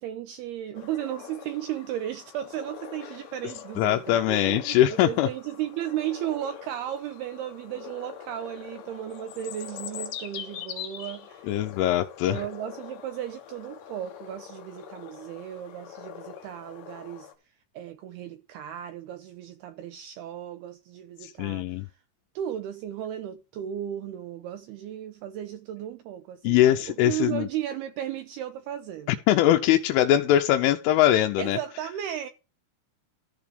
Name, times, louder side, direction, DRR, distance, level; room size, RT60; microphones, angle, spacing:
voice 1, 0.0-11.6 12.3-17.3 17.7-21.9 22.4-29.2 31.4-32.3, right 11 dB, 90° right, 2.3 m, -35 dB
sound 1, 0.7-17.3, left 10 dB, 65° left, 2.9 m, -43 dB
voice 2, 3.8-5.3 11.5-12.4 21.2-21.8 26.4-27.5 29.1-31.6, left 12 dB, 85° left, 3.2 m, -22 dB
14.0 x 4.9 x 5.2 m
omnidirectional pair, 5.5 m